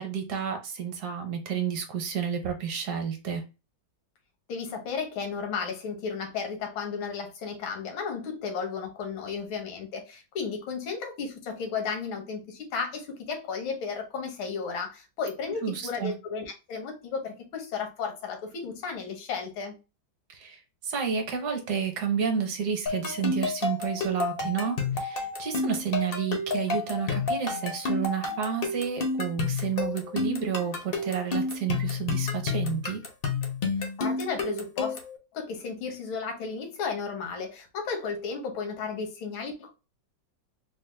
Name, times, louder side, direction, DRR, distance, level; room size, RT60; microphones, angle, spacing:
voice 1, 0.0-3.4 15.6-16.1 20.3-33.0, right 7 dB, 65° right, 1.2 m, -30 dB
voice 2, 4.5-19.8 34.0-35.0 35.3-39.7, left 5 dB, 85° left, 1.7 m, -34 dB
sound 1, 22.9-35.2, left 4 dB, 70° left, 0.5 m, -30 dB
4.0 x 2.1 x 3.2 m
omnidirectional pair, 2.2 m